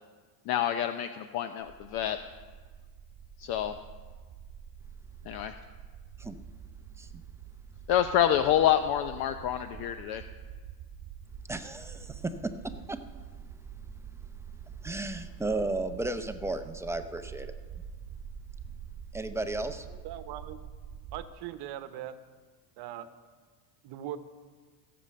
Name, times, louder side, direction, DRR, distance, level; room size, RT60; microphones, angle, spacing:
voice 1, 0.5-2.2 3.4-3.8 5.3-5.5 7.9-10.2, left 10 dB, 45° left, 10 dB, 0.7 m, -27 dB
sound 1, 1.6-21.3, right 7 dB, 35° right, 1.3 m, -46 dB
voice 2, 11.5-13.0 14.8-17.5 19.1-20.0, right 2 dB, 5° right, 7 dB, 0.6 m, -34 dB
voice 3, 20.0-20.6 21.1-22.1 22.8-23.1 23.8-24.2, right 12 dB, 50° right, 11 dB, 1.0 m, -40 dB
16.0 x 7.0 x 7.6 m, 1.5 s
supercardioid pair, 110°, 50 cm